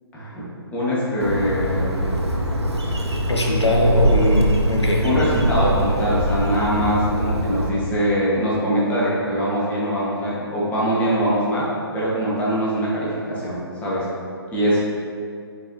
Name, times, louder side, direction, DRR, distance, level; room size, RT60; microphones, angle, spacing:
voice 1, 0.1-0.4 0.7-1.9 5.0-11.6 11.9-14.0 14.5-14.8, equal, 10° left, -8 dB, 1.3 m, -22 dB
Bird, 1.2-7.7, right 1 dB, 85° right, 0.9 m, -22 dB
voice 2, 3.3-5.0, left 1 dB, 90° left, -1 dB, 1.0 m, -20 dB
7.1 x 4.7 x 2.8 m, 2.5 s
figure-of-eight pair, 140°, 14 cm